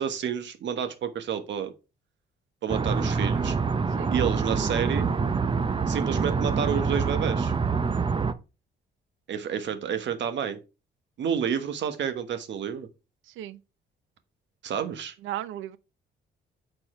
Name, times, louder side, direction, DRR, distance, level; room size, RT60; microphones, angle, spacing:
voice 1, 0.0-1.7 2.6-3.6 4.1-5.1 5.9-7.5 9.3-10.6 11.2-12.9 14.6-15.1, right 8 dB, 65° right, 1.2 m, -29 dB
sound 1, 2.7-8.3, right 5 dB, 25° right, 0.6 m, -26 dB
voice 2, 13.3-13.6 15.2-15.8, right 13 dB, 80° right, 0.5 m, -35 dB
6.6 x 4.3 x 4.3 m
cardioid pair, 90°, 20 cm